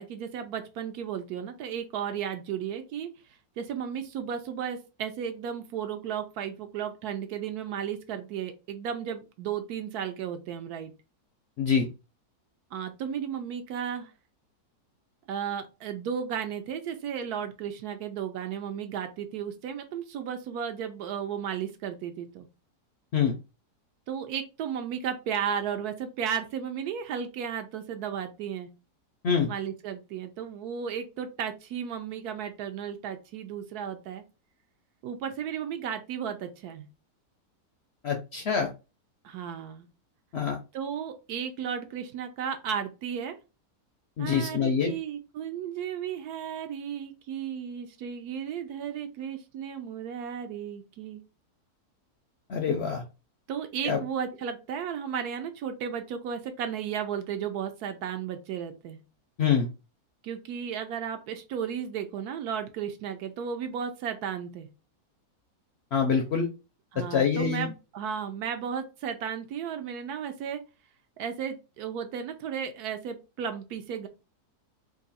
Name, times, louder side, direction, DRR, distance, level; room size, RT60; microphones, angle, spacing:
voice 1, 0.0-3.1 3.6-10.9 12.7-14.1 15.3-22.5 24.1-28.7 29.5-34.2 35.0-36.9 39.2-39.9 40.7-43.4 44.2-51.2 53.5-59.0 60.2-64.7 66.9-70.6 71.2-74.1, right 8 dB, 80° right, 7 dB, 1.1 m, -34 dB
voice 2, 38.0-38.7 40.3-40.6 44.2-44.9 52.5-53.0 53.8-54.0 59.4-59.7 65.9-66.5 67.1-67.7, left 6 dB, 65° left, 4 dB, 0.6 m, -25 dB
3.0 x 2.5 x 4.0 m, 0.29 s
omnidirectional pair, 1.7 m